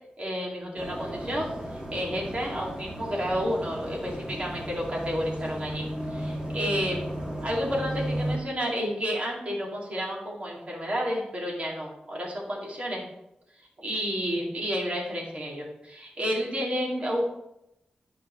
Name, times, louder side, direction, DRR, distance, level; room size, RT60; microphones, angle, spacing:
voice 1, 0.2-7.0 7.4-13.0 13.8-17.2, equal, 45° right, -3 dB, 2.3 m, -31 dB
sound 1, 0.8-8.4, right 1 dB, 25° right, 1.8 m, -34 dB
11.5 x 4.7 x 3.1 m, 0.86 s
wide cardioid pair, 90°, 3 cm